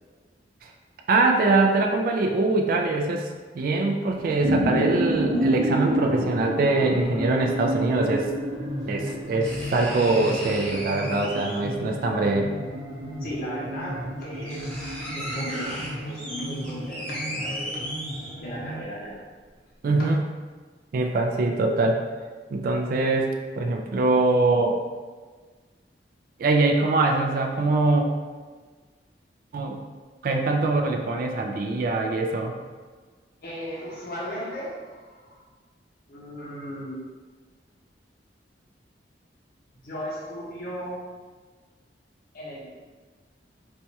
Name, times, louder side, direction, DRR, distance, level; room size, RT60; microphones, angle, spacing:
voice 1, 1.1-3.3 3.5-8.3 8.9-12.5 19.8-20.2 20.9-22.0 22.5-23.3 23.6-24.8 26.4-28.0 29.5-29.8 30.2-32.5, right 3 dB, 55° right, 2 dB, 0.3 m, -23 dB
sound 1, 4.1-18.8, equal, 85° right, 0.9 m, -30 dB
sound 2, 8.5-8.6 9.4-11.8 13.1-13.2 13.9-14.0 14.2-18.6 19.1-19.2, equal, 5° left, 0.8 m, -36 dB
voice 2, 13.2-17.8 18.4-19.2 33.4-35.4 36.1-37.1 39.8-41.1 42.3-42.7, equal, 60° left, -5 dB, 0.7 m, -36 dB
4.3 x 2.2 x 2.8 m, 1.4 s
head